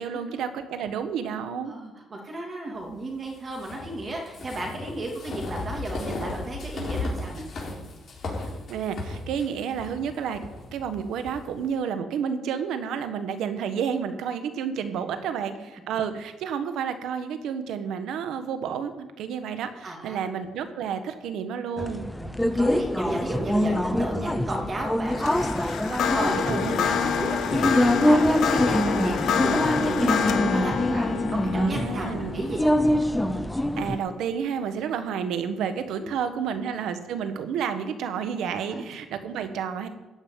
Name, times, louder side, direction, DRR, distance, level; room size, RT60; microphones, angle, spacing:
voice 1, 0.0-1.7 8.7-10.4 10.7-22.0 26.5-26.9 30.0-30.4 31.5-32.4 33.8-39.9, right 7 dB, 85° right, 9 dB, 1.3 m, -30 dB
voice 2, 1.7-7.4 19.8-20.2 22.1-32.6 35.9-36.1 38.7-38.9, right 2 dB, 40° right, 1 dB, 2.8 m, -33 dB
sound 1, 3.5-11.4, left 2 dB, 45° left, 4.6 m, -35 dB
sound 2, 21.8-34.0, left 1 dB, 5° left, 0.8 m, -25 dB
sound 3, 25.1-34.4, left 7 dB, 75° left, 1.2 m, -28 dB
15.0 x 5.5 x 9.5 m, 1.1 s
cardioid pair, 90°, 0 cm